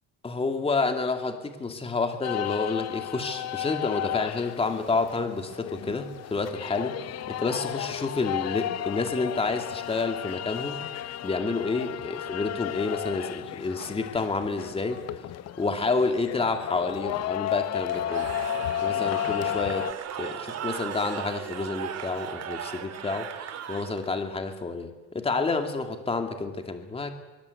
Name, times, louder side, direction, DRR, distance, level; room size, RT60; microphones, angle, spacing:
voice 1, 0.2-10.8 11.2-15.2 15.6-18.3 18.8-19.9 20.2-23.4 23.7-27.1, left 3 dB, 15° left, 6 dB, 2.4 m, -29 dB
sound 1, 2.2-19.9, left 12 dB, 50° left, 0.8 m, -33 dB
Cheering / Crowd, 17.9-24.2, right 8 dB, 50° right, 2.5 m, -37 dB
25.0 x 23.5 x 8.4 m, 1.2 s
cardioid pair, 160°, 33 cm